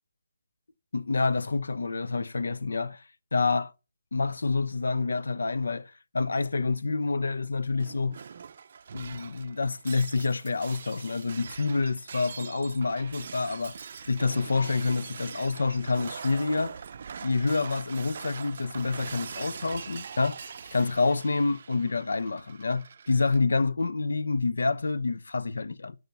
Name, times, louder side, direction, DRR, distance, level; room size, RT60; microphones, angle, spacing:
voice 1, 0.9-3.0 3.3-3.7 4.1-8.2 8.9-13.8 14.1-16.8 17.2-26.0, left 3 dB, 75° left, 0.9 m, -28 dB
Shatter, 7.8-23.4, right 6 dB, 35° right, 0.5 m, -43 dB
8.8 x 6.7 x 7.0 m
hypercardioid pair, 180°, 0 cm